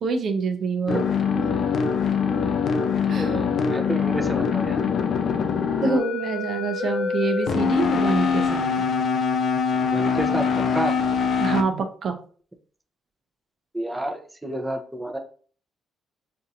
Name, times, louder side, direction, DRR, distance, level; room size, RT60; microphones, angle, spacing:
voice 1, 0.0-1.0 3.1-3.8 5.8-8.6 11.4-12.1, right 4 dB, 60° right, 5 dB, 0.7 m, -26 dB
sound 1, 0.9-11.6, left 6 dB, 60° left, 0.5 m, -23 dB
voice 2, 3.2-4.8 9.9-10.5 10.7-11.0 13.7-15.2, right 1 dB, 10° right, 4 dB, 0.7 m, -30 dB
5.3 x 2.8 x 2.5 m, 0.43 s
cardioid pair, 90°, 0 cm